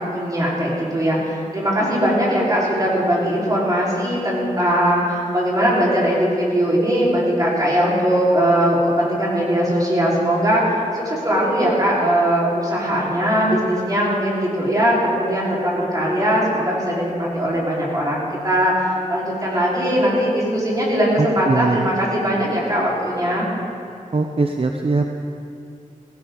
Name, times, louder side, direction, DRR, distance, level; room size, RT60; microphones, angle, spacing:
voice 1, 0.0-10.6 10.9-23.5, equal, 25° right, -6 dB, 4.5 m, -20 dB
voice 2, 21.2-21.9 24.1-25.1, right 3 dB, 45° right, 4 dB, 0.7 m, -21 dB
16.5 x 16.5 x 4.0 m, 2.6 s
wide cardioid pair, 75°, 14 cm